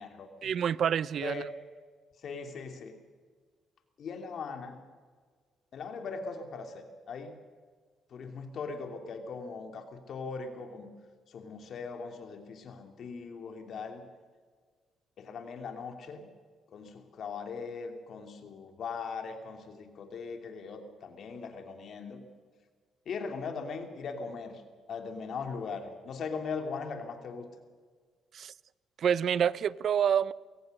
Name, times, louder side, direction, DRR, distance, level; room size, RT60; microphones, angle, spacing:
voice 1, 0.4-1.4 28.3-28.5 29.0-30.3, right 8 dB, 60° right, 0.6 m, -27 dB
voice 2, 2.2-3.0 4.0-4.8 5.7-7.4 8.1-10.9 11.3-14.1 15.2-16.3 16.7-22.2 23.1-24.6 24.9-27.5, left 5 dB, 60° left, 2.8 m, -40 dB
22.5 x 17.5 x 6.6 m
cardioid pair, 90°, 0 cm